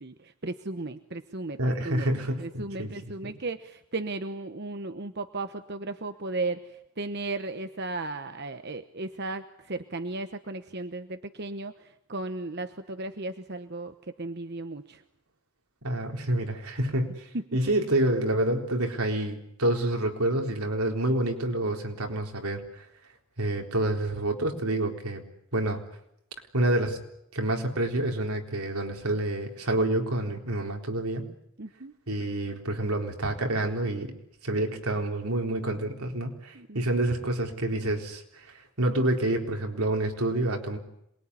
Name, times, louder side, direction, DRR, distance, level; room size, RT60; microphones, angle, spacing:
voice 1, 0.0-1.6 1.8-2.1 2.4-15.0 17.3-17.4 31.6-31.9 36.5-36.9, right 2 dB, 50° right, 9 dB, 1.0 m, -35 dB
voice 2, 1.6-3.3 15.8-22.9 23.4-25.2 25.5-25.8 26.5-27.0 27.3-31.3 32.1-34.2 34.4-40.8, right 1 dB, 85° right, 3 dB, 4.0 m, -28 dB
27.0 x 21.5 x 9.8 m, 0.78 s
head